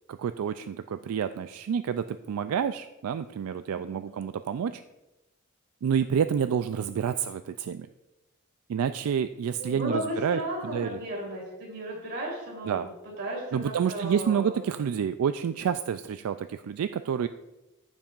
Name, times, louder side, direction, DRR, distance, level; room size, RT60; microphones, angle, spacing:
voice 1, 0.1-4.8 5.8-7.9 8.7-11.0 12.7-12.9 13.5-17.3, right 7 dB, 80° right, 10 dB, 0.3 m, -29 dB
voice 2, 3.7-4.1 9.6-14.6, right 1 dB, 50° right, -3 dB, 3.3 m, -35 dB
14.5 x 7.3 x 2.4 m, 1.0 s
head